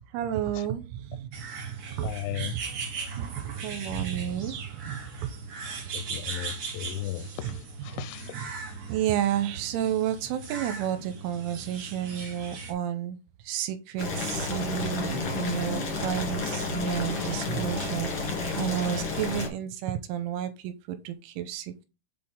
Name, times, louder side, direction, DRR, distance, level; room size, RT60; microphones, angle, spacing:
voice 1, 0.1-2.6 3.1-4.6 4.9-5.3 8.0-8.1 8.9-13.2 13.4-21.9, right 11 dB, 85° right, 3.1 m, -31 dB
sound 1, 1.3-12.7, right 4 dB, 50° right, 3.0 m, -39 dB
voice 2, 2.0-2.5 5.9-8.4, left 16 dB, 80° left, 2.8 m, -36 dB
Boiling, 14.0-19.5, left 3 dB, 50° left, 1.6 m, -31 dB
7.7 x 4.4 x 3.6 m
omnidirectional pair, 5.8 m